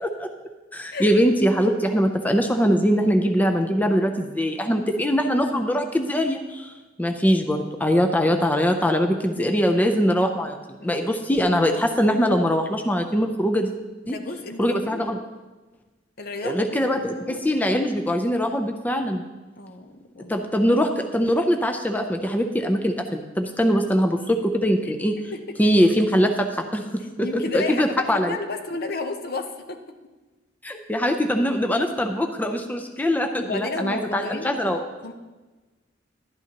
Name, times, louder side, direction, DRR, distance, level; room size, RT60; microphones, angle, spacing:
voice 1, 0.7-6.7 7.0-10.6 10.8-13.7 14.1-14.2 14.6-15.2 16.4-19.2 20.3-25.1 25.6-27.3 27.5-28.4 30.6-34.8, equal, 10° left, 4 dB, 0.5 m, -22 dB
voice 2, 14.0-15.1 16.2-17.5 19.6-20.5 24.8-24.9 25.3-25.6 27.2-29.8 33.4-34.5 35.0-35.1, left 3 dB, 55° left, 6 dB, 0.8 m, -32 dB
11.5 x 11.0 x 2.9 m, 1.2 s
head